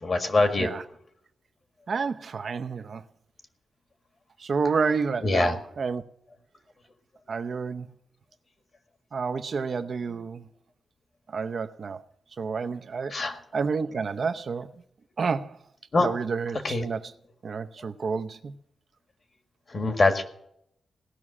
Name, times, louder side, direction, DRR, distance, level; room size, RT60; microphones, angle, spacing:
voice 1, 0.0-0.7 5.2-5.6 13.1-13.4 15.9-16.1 16.6-16.9 19.7-20.2, left 2 dB, 40° left, 1.7 m, -23 dB
voice 2, 1.9-3.0 4.4-6.0 7.3-7.9 9.1-10.5 11.3-12.0 12.4-13.2 13.5-14.8 15.2-15.6 16.0-17.1 17.4-18.5, right 5 dB, 50° right, 0.7 m, -29 dB
17.5 x 6.2 x 9.6 m
wide cardioid pair, 150°, 0 cm